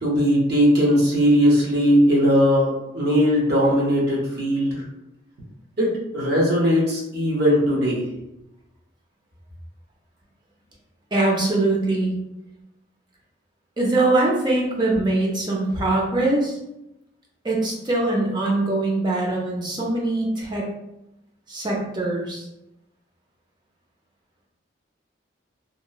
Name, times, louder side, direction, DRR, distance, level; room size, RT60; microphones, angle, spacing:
voice 1, 0.0-4.8 5.8-8.1, equal, 55° right, -4 dB, 0.8 m, -19 dB
voice 2, 11.1-12.1 13.8-16.6 17.4-20.7 21.5-22.4, right 2 dB, 25° right, -2 dB, 0.5 m, -22 dB
2.8 x 2.0 x 2.3 m, 0.89 s
head